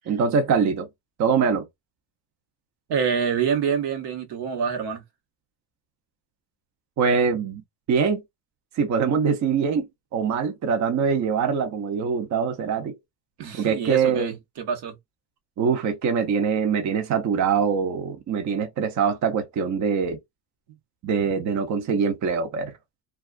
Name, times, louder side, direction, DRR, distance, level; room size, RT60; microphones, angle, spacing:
voice 1, 0.1-0.9 1.2-1.7 7.0-7.6 7.9-8.2 8.7-9.9 10.1-12.9 13.6-14.3 15.6-20.2 21.0-22.7, right 6 dB, 45° right, 0.6 m, -23 dB
voice 2, 2.9-5.0 13.4-14.9, right 7 dB, 75° right, 1.0 m, -26 dB
2.3 x 2.3 x 2.4 m
cardioid pair, 100°, 42 cm